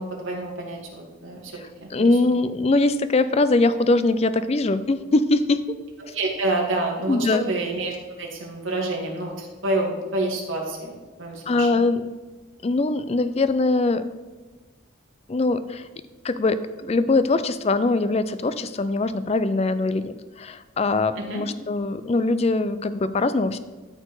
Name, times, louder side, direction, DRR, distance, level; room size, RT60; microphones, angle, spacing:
voice 1, 0.0-1.5 1.8-2.3 6.1-11.7 21.1-21.4, right 2 dB, 75° right, -1 dB, 2.0 m, -28 dB
voice 2, 1.9-5.8 7.1-7.4 11.5-12.0 12.6-14.0 15.3-15.9 16.2-23.6, left 2 dB, 30° left, 13 dB, 0.4 m, -22 dB
12.5 x 4.4 x 4.7 m, 1.2 s
head